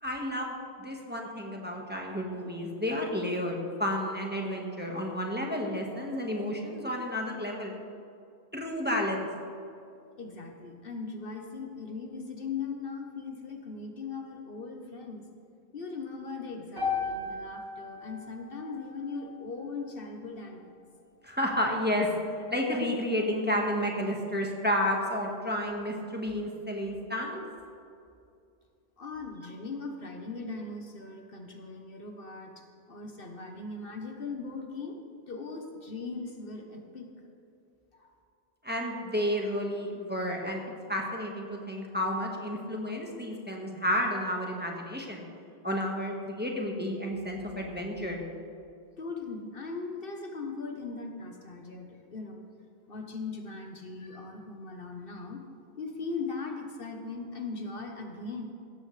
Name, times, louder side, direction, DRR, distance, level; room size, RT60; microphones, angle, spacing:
voice 1, 0.0-7.7 8.5-9.3 21.2-22.1 22.5-27.4 38.6-40.6 40.9-45.2 45.6-48.2, equal, 10° right, -1 dB, 1.6 m, -31 dB
voice 2, 10.2-15.3 15.7-20.8 29.0-35.0 35.3-37.1 37.9-38.1 49.0-52.5 52.9-55.4 55.8-58.5, left 4 dB, 60° left, 3 dB, 1.3 m, -39 dB
sound 1, 16.8-20.9, left 4 dB, 65° right, 4.3 m, -37 dB
17.0 x 14.0 x 3.3 m, 2.5 s
omnidirectional pair, 1.0 m